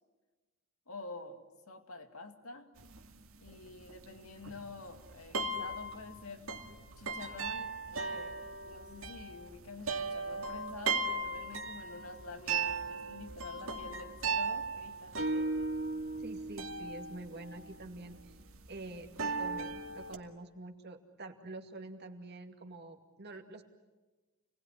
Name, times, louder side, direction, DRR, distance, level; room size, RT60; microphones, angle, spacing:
voice 1, 0.9-2.7 3.4-6.5 7.0-15.7, left 2 dB, 90° left, 6 dB, 2.3 m, -48 dB
sound 1, 2.8-20.2, right 3 dB, 70° right, 2.2 m, -37 dB
voice 2, 16.2-18.3 18.7-23.6, right 2 dB, 50° right, 4 dB, 2.4 m, -47 dB
29.0 x 20.0 x 10.0 m, 1.2 s
head